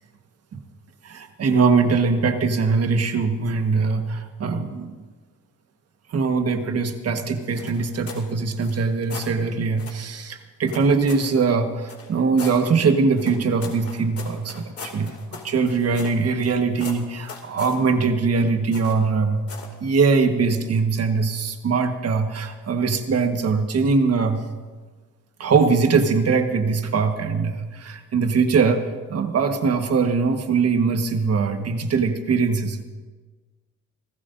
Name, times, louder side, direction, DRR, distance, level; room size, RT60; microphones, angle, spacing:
voice 1, 1.0-5.0 6.1-19.4 19.8-24.4 25.4-28.8 29.1-32.8, right 4 dB, 55° right, 6 dB, 1.6 m, -22 dB
sound 1, 7.6-8.3 8.6-9.3 9.8-10.0 10.7-11.3 11.9-12.6 13.2-16.5 16.8-17.8 18.7-19.1 19.5-19.8, left 4 dB, 50° left, 2.6 m, -39 dB
27.0 x 15.5 x 2.7 m, 1.4 s
cardioid pair, 90°, 30 cm